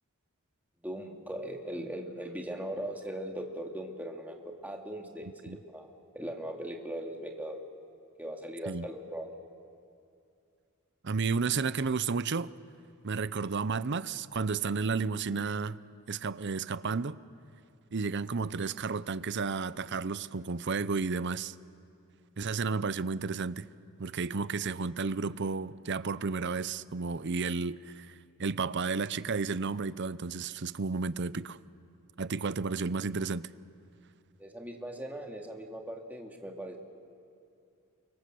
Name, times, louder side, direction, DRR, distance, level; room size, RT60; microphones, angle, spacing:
voice 1, 0.8-7.6 8.2-9.3 34.4-36.8, right 1 dB, 10° right, 2.5 m, -39 dB
voice 2, 11.0-12.5 13.0-15.8 16.1-17.2 17.9-21.5 22.4-23.7 24.0-31.6 32.2-33.5, right 4 dB, 55° right, 0.7 m, -32 dB
29.5 x 25.0 x 7.7 m
head